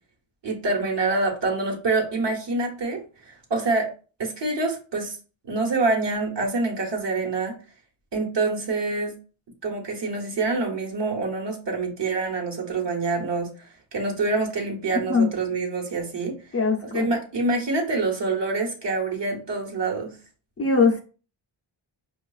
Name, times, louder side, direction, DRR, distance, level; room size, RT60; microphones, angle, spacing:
voice 1, 0.4-3.9 4.2-5.2 5.5-7.6 8.1-9.2 9.6-16.4 16.8-20.1, right 3 dB, 60° right, 1 dB, 1.1 m, -26 dB
voice 2, 16.5-17.1 20.6-21.0, left 4 dB, 30° left, 2 dB, 0.4 m, -21 dB
4.6 x 2.3 x 2.3 m, 0.37 s
wide cardioid pair, 80°, 49 cm